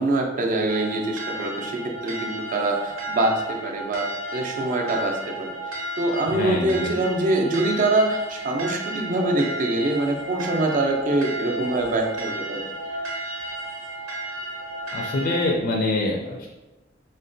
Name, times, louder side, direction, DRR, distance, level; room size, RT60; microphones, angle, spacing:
voice 1, 0.0-5.5 6.0-12.6, right 2 dB, 45° right, 1 dB, 0.4 m, -24 dB
sound 1, 0.7-15.5, right 1 dB, 85° right, 0.7 m, -33 dB
voice 2, 6.3-6.9 14.9-16.5, left 2 dB, 50° left, -1 dB, 0.4 m, -25 dB
3.7 x 2.1 x 2.6 m, 1.1 s
head